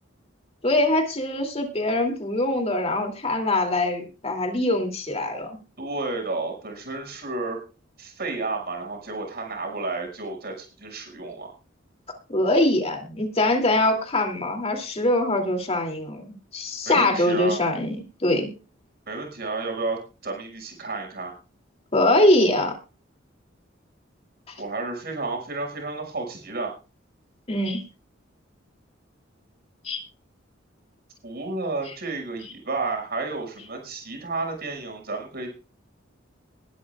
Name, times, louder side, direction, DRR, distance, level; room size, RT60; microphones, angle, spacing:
voice 1, 0.6-5.5 12.3-16.2 16.5-18.5 21.9-22.7 27.5-27.8 29.8-30.0, left 1 dB, 35° left, 3 dB, 2.8 m, -23 dB
voice 2, 5.8-7.6 8.0-11.5 16.9-17.6 19.1-21.3 24.6-26.7 31.2-35.5, right 3 dB, 55° right, 2 dB, 6.1 m, -31 dB
21.0 x 12.0 x 2.4 m, 0.32 s
head